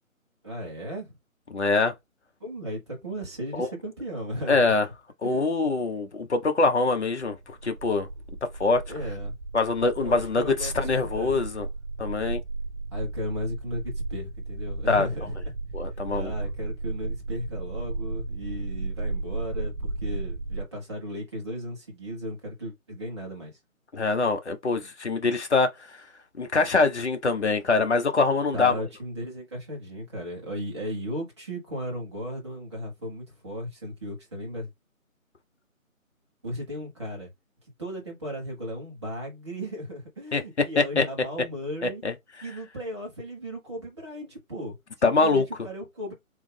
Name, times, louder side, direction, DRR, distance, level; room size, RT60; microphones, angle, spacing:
voice 1, 0.4-1.2 2.4-4.7 5.2-5.6 8.9-9.4 9.9-11.4 12.9-15.4 16.1-23.5 24.8-24.9 28.5-34.7 36.4-37.3 37.8-42.0 42.4-46.1, equal, 20° right, 1.0 m, -36 dB
voice 2, 1.5-1.9 3.6-3.7 4.5-4.9 5.2-8.1 8.6-8.8 9.5-11.7 12.0-12.4 14.9-15.1 15.7-16.3 23.9-25.7 26.3-28.7 40.3-40.4 40.8-41.0 41.8-42.1 45.0-45.4, left 3 dB, 55° left, 0.9 m, -24 dB
sound 1, 7.3-20.7, right 3 dB, 65° right, 0.8 m, -34 dB
3.5 x 2.7 x 3.2 m
figure-of-eight pair, 150°, 41 cm